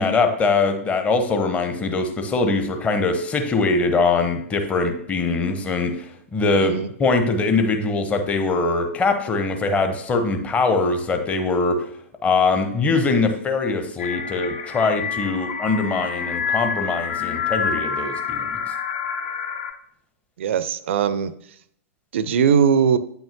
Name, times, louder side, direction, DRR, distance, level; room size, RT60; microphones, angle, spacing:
voice 1, 0.0-11.9 12.2-18.6, left 3 dB, 15° left, 6 dB, 0.9 m, -22 dB
voice 2, 6.5-6.9 20.4-21.3 22.1-23.0, right 7 dB, 55° right, 14 dB, 0.5 m, -20 dB
sound 1, 14.0-19.7, left 6 dB, 50° left, 0.9 m, -27 dB
8.7 x 5.8 x 2.8 m, 0.69 s
figure-of-eight pair, 100°, 8 cm